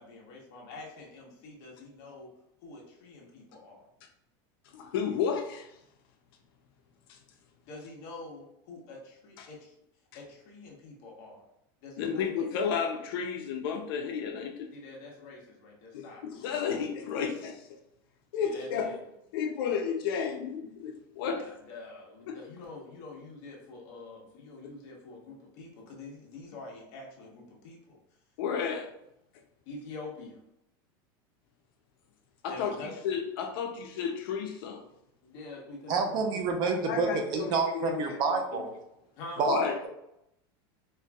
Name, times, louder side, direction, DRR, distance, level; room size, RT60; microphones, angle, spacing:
voice 1, 0.0-2.3 2.6-3.9 7.7-9.7 10.1-11.4 11.8-12.5 14.7-16.7 18.4-19.0 21.1-28.0 29.6-30.4 32.5-32.9 35.2-36.2 39.2-39.5, left 3 dB, 50° left, -2 dB, 1.2 m, -46 dB
voice 2, 4.7-5.7 7.1-7.2 9.4-9.5 12.0-14.7 15.9-17.8 18.3-18.9 19.3-21.4 22.3-22.4 28.4-28.9 32.4-32.8 33.0-34.8 36.6-38.6 39.4-39.8, left 7 dB, 70° left, 2 dB, 0.6 m, -32 dB
voice 3, 35.9-38.7 39.4-39.9, right 4 dB, 35° right, 4 dB, 0.5 m, -28 dB
4.4 x 2.5 x 2.3 m, 0.80 s
supercardioid pair, 155°, 13 cm